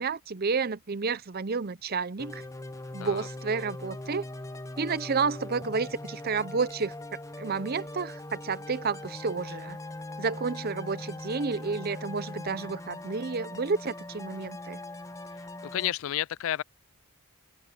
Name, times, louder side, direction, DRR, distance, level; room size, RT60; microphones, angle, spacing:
voice 1, 0.0-2.4 2.9-4.2 4.8-6.9 7.4-9.8 10.2-14.8, right 4 dB, 45° right, 0.6 m, -30 dB
sound 1, 2.2-15.9, left 1 dB, 15° left, 0.7 m, -41 dB
voice 2, 15.6-16.6, left 12 dB, 65° left, 0.3 m, -31 dB
open air
head